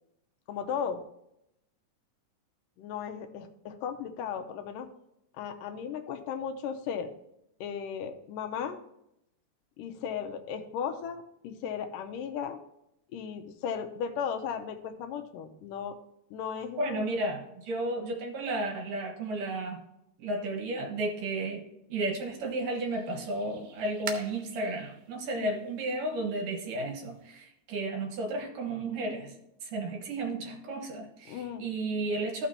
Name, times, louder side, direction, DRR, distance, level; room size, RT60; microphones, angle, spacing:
voice 1, 0.5-1.0 2.8-4.9 5.4-7.1 7.6-8.8 9.8-12.6 13.1-16.0 16.3-17.2 25.4-25.6 31.3-31.6, left 7 dB, 80° left, 5 dB, 2.2 m, -36 dB
voice 2, 16.8-19.8 20.2-21.6 21.9-29.4 29.6-32.5, right 2 dB, 75° right, 2 dB, 2.9 m, -33 dB
sound 1, 22.1-27.3, right 8 dB, 90° right, 2.7 m, -47 dB
14.5 x 5.9 x 2.8 m, 0.81 s
omnidirectional pair, 4.0 m